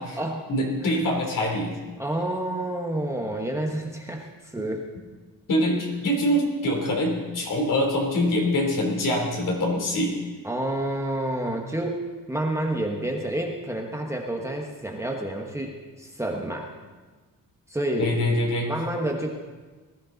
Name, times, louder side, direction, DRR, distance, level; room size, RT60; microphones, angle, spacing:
voice 1, 0.5-1.7 5.5-10.1 18.0-18.7, left 1 dB, 65° left, 0 dB, 3.5 m, -24 dB
voice 2, 2.0-4.8 10.4-12.0 12.3-16.7 17.7-18.2 18.6-19.3, right 1 dB, 10° right, 0 dB, 1.2 m, -29 dB
19.5 x 13.0 x 4.0 m, 1.3 s
wide cardioid pair, 160°, 34 cm